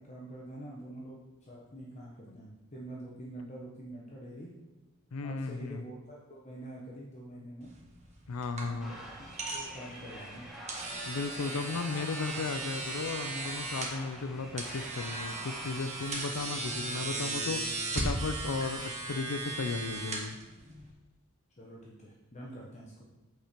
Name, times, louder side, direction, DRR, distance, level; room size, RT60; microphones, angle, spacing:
voice 1, 0.0-4.5 5.2-7.7 8.6-10.5 21.6-23.1, right 1 dB, 30° left, -4 dB, 1.1 m, -46 dB
voice 2, 5.1-5.8 8.3-9.0 11.0-17.6 17.9-20.4, left 4 dB, 75° left, 9 dB, 0.5 m, -35 dB
sound 1, 7.6-20.9, right 2 dB, 30° right, 1.4 m, -37 dB
sound 2, 8.8-17.0, equal, ahead, 1.3 m, -47 dB
8.1 x 4.4 x 5.1 m, 1.1 s
head